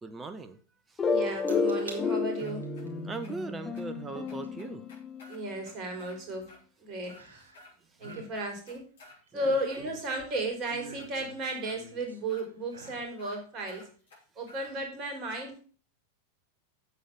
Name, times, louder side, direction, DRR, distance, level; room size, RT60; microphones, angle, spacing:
voice 1, 0.0-0.6 0.9-1.0 3.0-4.9 9.3-9.9, right 3 dB, 15° right, 9 dB, 1.0 m, -40 dB
Soft Harp Intro, 1.0-5.6, left 4 dB, 20° left, 1.7 m, -31 dB
voice 2, 1.1-2.7 5.3-6.5 6.8-7.4 8.0-8.8 9.3-13.9 14.4-15.6, right 1 dB, 35° right, 3 dB, 3.9 m, -34 dB
sound 1, 1.5-2.0 2.5-2.9 4.4-4.5 7.1-7.7 8.0-8.3 9.1-10.2 10.7-12.2 12.6-13.1 13.6-13.7, right 4 dB, 70° right, 2.7 m, -47 dB
sound 2, 1.8-2.8 3.2-3.3 3.8-3.9 4.3-6.2 6.5-6.6 7.0-7.7 8.0-9.2 9.6-10.5 11.0-11.1 11.6-11.8 12.3-12.4 12.8-12.9 13.2-13.4 13.7-14.7, left 1 dB, 60° left, 5.7 m, -53 dB
8.4 x 7.6 x 6.1 m, 0.40 s
figure-of-eight pair, 90°, 0 cm